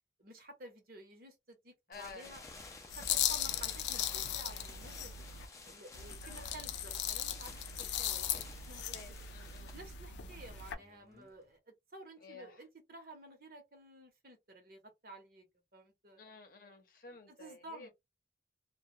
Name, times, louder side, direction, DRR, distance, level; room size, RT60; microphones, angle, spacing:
voice 1, 0.2-2.4 2.9-5.2 5.6-9.2 9.7-15.4 15.7-16.2 17.1-17.9, right 1 dB, 50° right, 0.9 m, -53 dB
voice 2, 1.9-2.4 6.2-6.6 8.8-9.8 12.2-12.6 16.2-17.9, left 3 dB, 50° left, 0.8 m, -53 dB
sound 1, 1.9-11.5, left 3 dB, 15° left, 0.5 m, -53 dB
sound 2, 2.9-5.5 5.9-10.8, left 10 dB, 80° left, 0.4 m, -38 dB
2.3 x 2.2 x 2.7 m
head